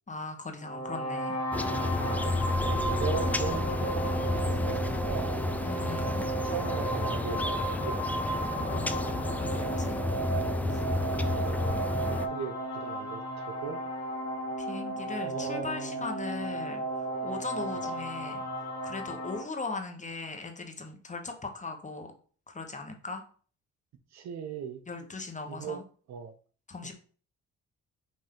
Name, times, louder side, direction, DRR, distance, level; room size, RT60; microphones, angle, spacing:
voice 1, 0.1-1.4 5.6-6.2 8.6-10.0 10.7-10.8 14.6-16.8 17.2-18.4 18.8-22.1 22.5-23.2 24.9-25.8 26.7-26.9, left 3 dB, 25° left, 4 dB, 0.9 m, -39 dB
sound 1, 0.6-19.4, right 2 dB, 60° left, 1.3 m, -34 dB
sound 2, 1.5-12.3, left 2 dB, 5° left, 0.3 m, -31 dB
voice 2, 2.0-5.4 5.9-8.1 8.5-9.0 10.8-13.8 15.2-16.1 17.8-17.9 24.1-24.8 25.5-25.8 26.1-26.3, right 6 dB, 65° right, 8 dB, 0.7 m, -39 dB
5.6 x 2.6 x 3.7 m, 0.43 s
cardioid pair, 75°, 30 cm